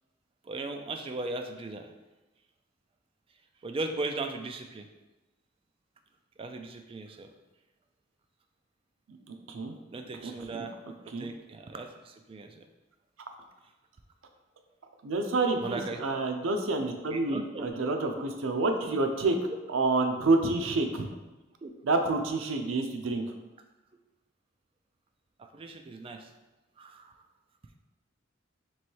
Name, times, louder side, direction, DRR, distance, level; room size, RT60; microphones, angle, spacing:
voice 1, 0.4-1.9 3.6-4.9 6.4-7.3 9.9-10.7 11.2-12.6 15.6-16.2 17.1-17.7 19.5-19.6 21.6-21.7 25.4-26.3 26.8-27.1, right 3 dB, 30° right, 5 dB, 0.3 m, -37 dB
voice 2, 9.3-9.8 10.2-10.7 11.1-11.3 15.0-19.4 19.7-21.1 21.8-23.2, right 3 dB, 90° right, 5 dB, 0.5 m, -28 dB
3.1 x 3.0 x 4.5 m, 1.1 s
head